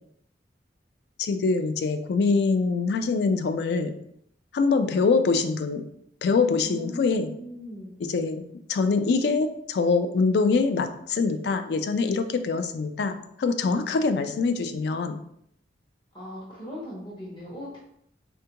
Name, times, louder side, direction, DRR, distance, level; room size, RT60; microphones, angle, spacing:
voice 1, 1.2-3.9 4.5-5.8 6.2-7.3 8.0-8.4 8.7-15.2, left 4 dB, 65° left, 9 dB, 0.3 m, -24 dB
voice 2, 6.5-7.9 16.1-17.8, left 1 dB, 25° left, -6 dB, 0.7 m, -39 dB
3.4 x 2.4 x 2.9 m, 0.71 s
head